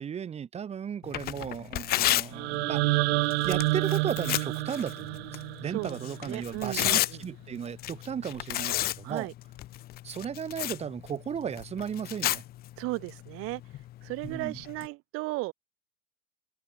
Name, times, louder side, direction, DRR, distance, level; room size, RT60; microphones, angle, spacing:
voice 1, 0.0-3.0 3.4-9.3 10.0-12.4 14.2-14.6, right 8 dB, 20° right, 1.3 m, -35 dB
Tearing, 1.0-14.9, left 15 dB, 30° left, 0.6 m, -34 dB
sound 1, 2.3-6.4, right 25 dB, 70° right, 1.0 m, -29 dB
voice 2, 5.6-6.0 6.3-7.2 9.0-9.3 12.8-13.6 14.0-15.5, right 22 dB, 40° right, 1.0 m, -35 dB
open air
supercardioid pair, 160°, 33 cm